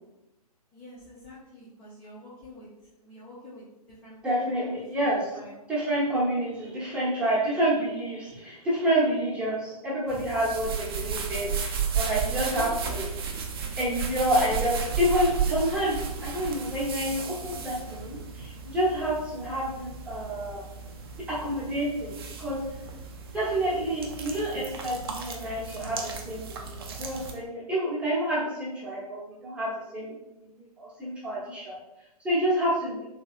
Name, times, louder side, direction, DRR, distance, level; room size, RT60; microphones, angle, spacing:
voice 1, 0.7-2.7 3.0-4.2 4.6-4.7 5.0-5.5 12.3-12.7, left 1 dB, 20° left, -8 dB, 0.5 m, -46 dB
voice 2, 4.2-5.3 5.7-13.0 13.8-20.6 21.3-22.6 23.3-30.1 30.5-31.8 32.2-33.1, equal, 5° right, -8 dB, 0.8 m, -28 dB
sound 1, 10.1-27.3, right 6 dB, 40° right, 0.4 m, -34 dB
3.0 x 2.7 x 2.4 m, 0.93 s
figure-of-eight pair, 125°, 20 cm